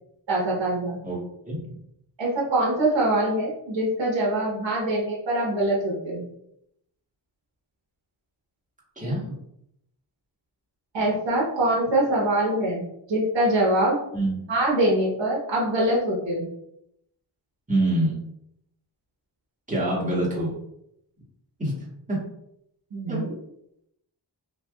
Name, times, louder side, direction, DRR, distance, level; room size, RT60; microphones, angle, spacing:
voice 1, 0.3-1.0 2.2-6.2 10.9-14.0 14.5-16.5 22.9-23.3, right 1 dB, 80° right, -4 dB, 1.1 m, -24 dB
voice 2, 1.0-1.6 9.0-9.4 14.1-14.4 17.7-18.2 19.7-20.5 21.6-22.2 23.1-23.2, right 1 dB, 15° right, -6 dB, 1.4 m, -26 dB
3.3 x 2.6 x 2.3 m, 0.76 s
wide cardioid pair, 75°, 44 cm